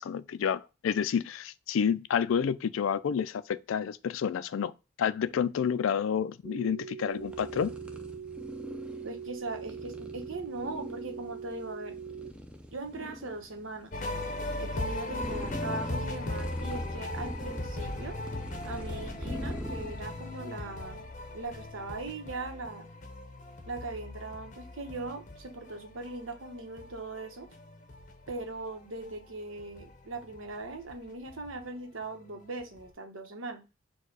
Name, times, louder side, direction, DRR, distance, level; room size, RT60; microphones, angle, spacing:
voice 1, 0.0-4.7 5.0-7.7, left 7 dB, 85° left, 0.4 m, -29 dB
sound 1, 6.4-12.3, right 7 dB, 55° right, 0.5 m, -42 dB
sound 2, 7.1-20.5, equal, 5° right, 0.4 m, -43 dB
voice 2, 9.0-11.9 12.7-13.9 14.6-18.2 18.6-21.1 21.3-22.9 23.7-27.5 28.3-33.6, right 2 dB, 85° right, 1.0 m, -40 dB
sound 3, 13.9-29.3 29.5-32.3 32.6-32.9, left 2 dB, 35° left, 0.6 m, -39 dB
4.5 x 2.2 x 4.6 m
head